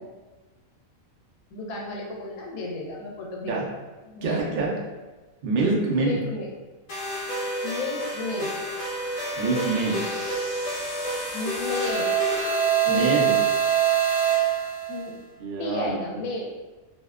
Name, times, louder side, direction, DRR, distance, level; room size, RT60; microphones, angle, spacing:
voice 1, 1.5-3.5 4.0-4.4 6.0-6.5 7.6-8.5 11.3-12.1 12.8-13.2 14.9-15.1 15.6-16.5, left 2 dB, 85° left, -2 dB, 1.1 m, -32 dB
voice 2, 4.2-4.7 5.4-6.2 9.4-10.0 12.9-13.3 15.4-16.2, right 3 dB, 80° right, -2 dB, 0.4 m, -25 dB
sound 1, 6.9-15.0, right 6 dB, 50° left, 0.9 m, -26 dB
sound 2, 8.5-12.9, equal, 20° right, 0.4 m, -43 dB
2.7 x 2.1 x 2.3 m, 1.2 s
omnidirectional pair, 1.5 m